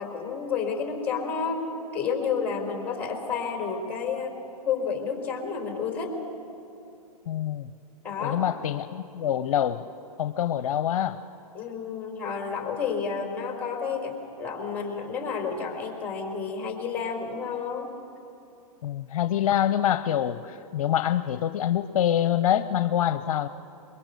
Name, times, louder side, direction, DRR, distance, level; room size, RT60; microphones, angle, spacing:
voice 1, 0.0-1.6 1.9-4.3 4.6-6.1 8.0-8.4 11.5-17.9, left 6 dB, 10° left, 1 dB, 4.0 m, -30 dB
voice 2, 7.3-7.7 8.2-9.8 10.2-11.2 18.8-23.5, left 10 dB, 60° left, 11 dB, 0.7 m, -25 dB
23.5 x 22.5 x 6.8 m, 2.8 s
hypercardioid pair, 135°, 20 cm